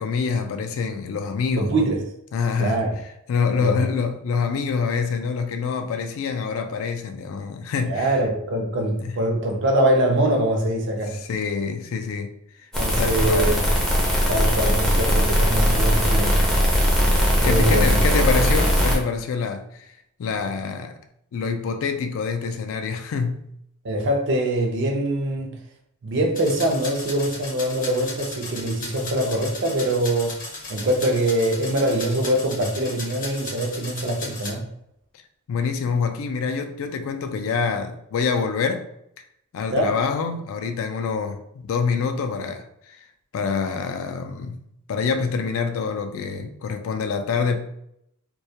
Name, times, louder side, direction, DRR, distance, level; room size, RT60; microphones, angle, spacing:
voice 1, 0.0-1.9 2.3-2.8 3.3-8.1 9.0-9.2 11.1-12.3 13.0-13.5 17.4-19.9 20.2-21.0 21.3-23.4 35.5-38.8 39.5-43.1 43.3-44.6 44.9-47.6, left 5 dB, 60° left, 7 dB, 0.3 m, -26 dB
voice 2, 1.6-2.0 2.6-3.0 3.6-3.8 7.9-11.1 12.8-13.5 14.3-16.3 17.4-18.0 23.8-25.5 26.0-30.4 30.7-34.7 39.7-39.9, right 1 dB, 55° right, 1 dB, 0.5 m, -23 dB
sound 1, 12.7-19.0, equal, ahead, 0.5 m, -19 dB
sound 2, 26.4-34.5, left 2 dB, 40° left, 0.7 m, -36 dB
2.2 x 2.1 x 2.7 m, 0.75 s
head